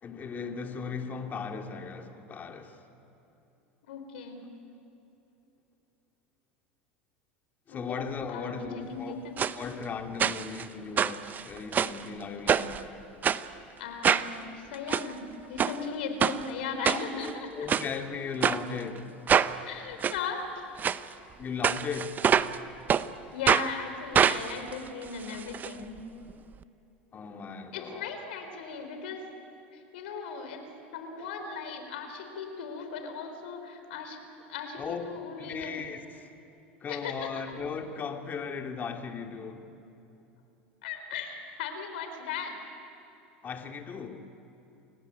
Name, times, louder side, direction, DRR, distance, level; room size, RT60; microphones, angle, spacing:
voice 1, 0.0-2.8 7.7-9.2 9.5-12.9 16.9-17.0 17.3-19.0 21.4-22.2 27.1-28.2 34.8-35.1 35.4-36.3 36.8-39.7 43.4-44.3, left 5 dB, 30° left, 2.6 m, -37 dB
voice 2, 3.8-4.4 7.7-8.0 8.3-9.4 13.8-17.7 19.7-20.7 22.8-22.9 23.3-26.0 27.7-29.3 29.7-30.6 30.9-34.2 34.5-35.8 36.9-37.3 40.8-42.6, left 5 dB, 75° left, 4.2 m, -37 dB
sound 1, 9.4-9.5 10.2-10.6 11.0-12.0 12.5-12.8 13.2-13.4 14.0-14.3 14.7-15.0 15.6-15.8 16.2-16.4 16.8-17.3 17.7-17.9 18.4-18.6 19.3-19.5 20.0-20.2 20.8-21.0 21.6-22.6 22.9-23.0 23.5-23.7 24.1-25.7 26.0-26.1 26.3-26.4, right 8 dB, 30° right, 0.8 m, -25 dB
28.5 x 16.0 x 9.5 m
hypercardioid pair, 90°, 6 cm